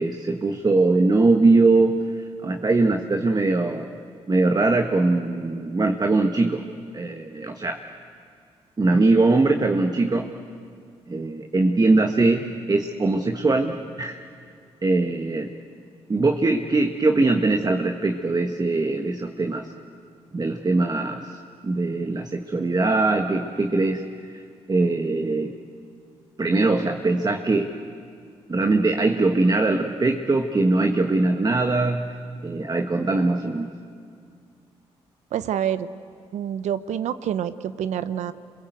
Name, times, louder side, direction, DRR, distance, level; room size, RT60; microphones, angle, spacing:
voice 1, 0.0-2.0 2.4-3.9 4.3-6.6 6.9-7.8 8.8-10.3 11.1-14.2 14.8-15.5 16.1-19.7 20.3-24.0 24.7-25.5 26.4-27.7 28.5-32.1 32.4-33.7, right 3 dB, 35° right, 5 dB, 1.5 m, -21 dB
voice 2, 35.3-35.9 36.3-38.3, right 9 dB, 75° right, 14 dB, 0.9 m, -27 dB
28.0 x 21.5 x 8.1 m, 2.3 s
supercardioid pair, 50°, 12 cm